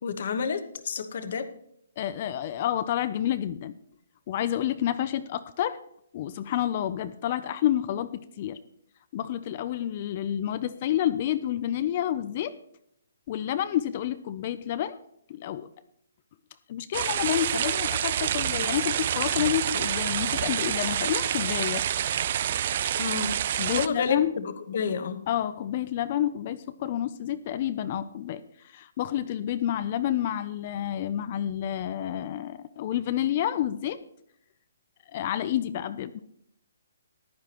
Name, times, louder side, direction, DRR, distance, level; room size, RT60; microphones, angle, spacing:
voice 1, 0.0-1.5 23.0-23.4 23.7-25.2, left 6 dB, 45° left, 10 dB, 1.0 m, -29 dB
voice 2, 2.0-3.7 4.3-5.8 6.1-8.6 9.1-12.5 13.3-15.0 15.3-15.7 16.7-21.8 23.6-24.3 25.3-34.0 35.1-36.2, left 11 dB, 30° left, 13 dB, 0.4 m, -29 dB
sound 1, 16.9-23.9, right 10 dB, 35° right, 0.4 m, -27 dB
14.5 x 11.0 x 3.0 m, 0.72 s
hypercardioid pair, 170°, 0 cm